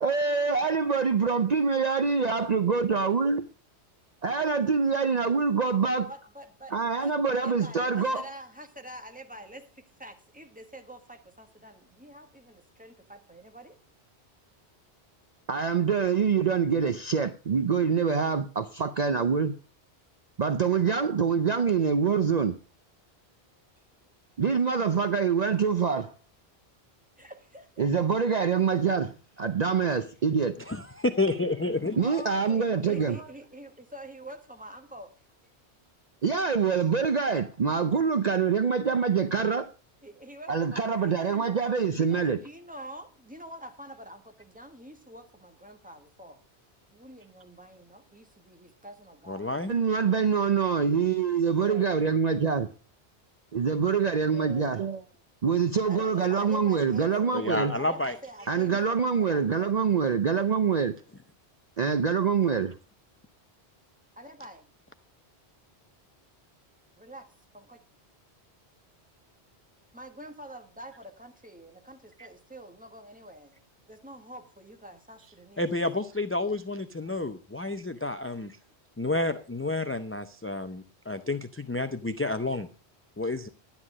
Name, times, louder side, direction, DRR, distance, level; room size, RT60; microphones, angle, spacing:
voice 1, 0.0-3.5 4.2-6.1 6.7-8.3 15.5-19.5 20.4-22.6 24.4-26.1 27.8-30.6 32.0-33.2 36.2-39.7 40.5-42.4 49.7-52.7 53.5-55.0 55.4-57.7 58.5-60.9 61.8-62.7, right 6 dB, 45° right, 0.7 m, -25 dB
voice 2, 6.1-13.8 27.2-27.8 32.0-35.1 40.0-41.6 42.0-46.4 46.9-49.4 51.5-51.9 54.3-54.7 55.9-59.4 62.5-62.6 64.1-64.7 67.0-67.3 67.5-67.8 69.9-75.7, right 1 dB, 10° right, 1.4 m, -46 dB
voice 3, 30.7-32.0 49.3-49.7 57.3-58.2 75.6-78.6 79.0-82.7 83.2-83.5, left 2 dB, 20° left, 0.4 m, -30 dB
11.5 x 9.9 x 4.8 m
omnidirectional pair, 1.1 m